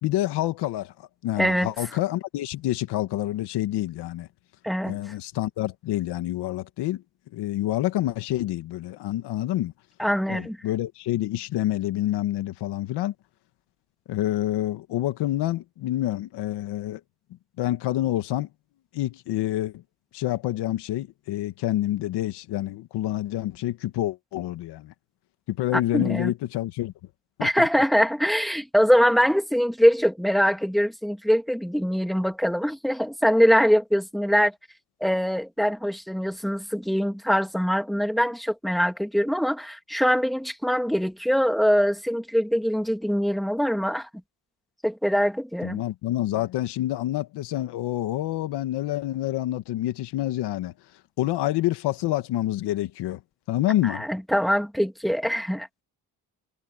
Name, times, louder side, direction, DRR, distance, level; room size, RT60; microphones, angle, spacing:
voice 1, 0.0-0.9 1.2-4.3 4.8-7.0 7.3-9.7 10.3-13.1 14.1-17.0 17.6-18.5 18.9-19.8 20.1-24.9 25.5-26.9 27.4-27.7 45.6-50.7 51.2-53.2 53.5-54.1, left 14 dB, 85° left, 1.8 m, -27 dB
voice 2, 1.4-1.7 4.6-5.0 10.0-10.6 25.7-26.3 27.4-34.5 35.0-44.1 44.8-45.8 53.8-55.7, equal, ahead, 2.1 m, -23 dB
cardioid pair, 110°, 39 cm